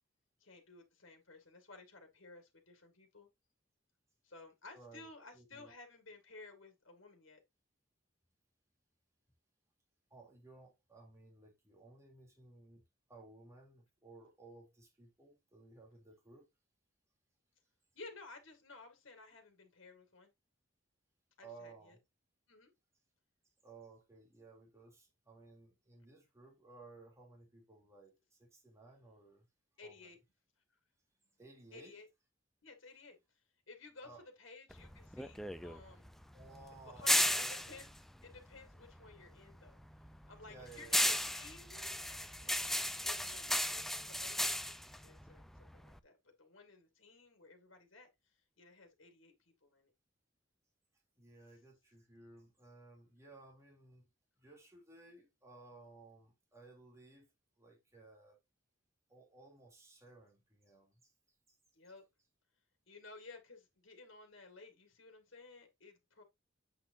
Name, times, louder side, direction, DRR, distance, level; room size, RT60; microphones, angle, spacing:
voice 1, 0.4-3.3 4.2-7.4 17.9-20.3 21.4-22.0 22.5-22.7 29.8-30.2 31.7-32.1 32.6-33.4 33.7-36.1 36.9-37.9 38.2-39.8 40.3-49.3 49.6-49.9 61.7-62.0 62.9-66.2, left 3 dB, 80° left, 2.1 m, -56 dB
voice 2, 4.7-5.7 10.1-12.8 13.1-16.5 21.4-22.0 23.6-29.5 29.8-30.1 31.4-32.0 34.0-34.3 36.3-37.8 40.5-41.1 51.2-54.1 54.4-57.3 57.6-58.4 59.1-61.1, right 3 dB, 15° right, 3.0 m, -58 dB
sound 1, 34.7-39.2 39.5-46.0, left 1 dB, ahead, 0.5 m, -35 dB
7.9 x 6.1 x 2.7 m
head